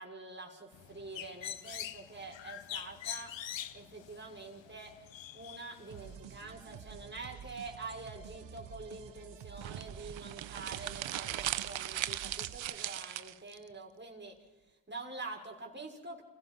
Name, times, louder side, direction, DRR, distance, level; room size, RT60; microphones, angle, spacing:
voice 1, 0.0-3.4 3.7-5.0 5.3-14.4 14.9-16.2, right 3 dB, 25° right, 0 dB, 6.1 m, -46 dB
Bird, 0.7-6.2, left 11 dB, 85° left, 1.0 m, -44 dB
sound 1, 5.9-12.6, right 8 dB, 75° right, 1.3 m, -49 dB
sound 2, 9.6-13.6, right 13 dB, 90° right, 0.9 m, -38 dB
29.5 x 16.5 x 5.6 m, 1.1 s
cardioid pair, 60°, 44 cm